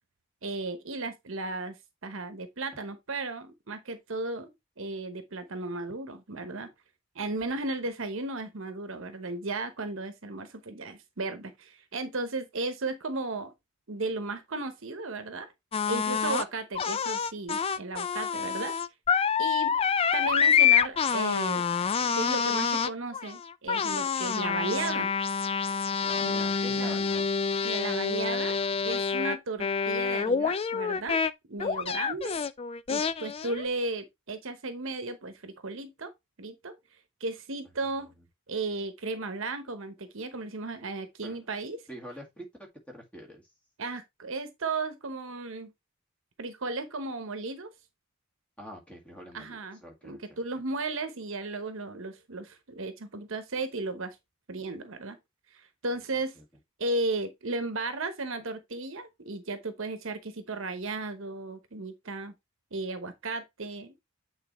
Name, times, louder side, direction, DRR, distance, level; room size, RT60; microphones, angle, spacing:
voice 1, 0.4-1.8 2.0-6.7 7.1-13.5 13.9-15.5 15.9-18.7 19.4-19.7 20.1-21.7 22.0-25.1 26.2-27.0 27.6-28.6 28.8-31.2 31.5-32.4 32.9-36.1 36.4-36.8 37.2-38.1 38.5-41.8 43.8-45.7 46.4-47.7 49.3-54.2 54.5-55.2 55.5-56.3 56.8-62.3 62.7-64.0, right 3 dB, 60° right, 1.0 m, -35 dB
sound 1, 15.7-16.4 16.7-31.3 31.6-33.6, left 6 dB, 25° left, 0.3 m, -27 dB
voice 2, 26.0-27.3 31.8-31.9 41.2-41.4 41.9-43.4 48.6-50.2 56.4-56.5, equal, 5° left, 1.9 m, -45 dB
8.6 x 4.0 x 3.1 m
head